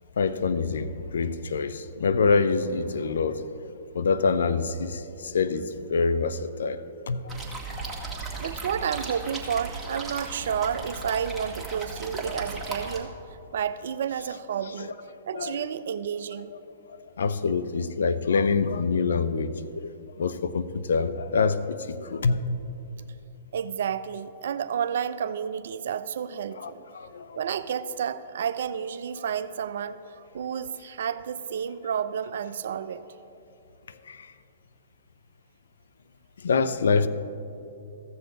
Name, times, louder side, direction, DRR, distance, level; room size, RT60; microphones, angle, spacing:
voice 1, 0.2-3.5 3.9-7.3 15.3-15.6 17.2-22.4 26.6-27.4 34.1-34.3 36.4-37.1, left 4 dB, 75° left, 13 dB, 0.5 m, -26 dB
sound 1, 7.3-13.0, right 3 dB, 5° right, 1.5 m, -36 dB
voice 2, 8.4-13.1 13.5-14.9 15.3-16.5 23.5-26.8 27.4-33.0, right 8 dB, 65° right, 13 dB, 0.4 m, -31 dB
14.5 x 6.8 x 3.9 m, 2.8 s
hypercardioid pair, 120°, 0 cm